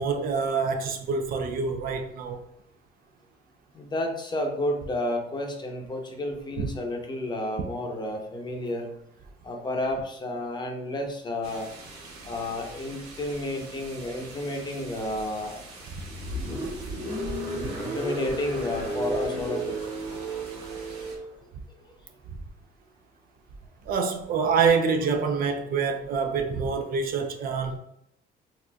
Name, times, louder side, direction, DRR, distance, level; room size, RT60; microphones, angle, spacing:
voice 1, 0.0-2.4 6.6-6.7 17.6-17.7 23.9-27.8, right 5 dB, 60° right, 0.5 m, -26 dB
voice 2, 3.7-8.9 9.4-11.7 12.2-15.6 17.8-19.7, left 1 dB, 25° left, 0.7 m, -31 dB
sound 1, 11.4-21.2, right 4 dB, 75° right, 1.2 m, -43 dB
Car, 15.9-21.3, equal, 35° right, 1.1 m, -33 dB
4.1 x 2.5 x 2.2 m
cardioid pair, 110°, 17 cm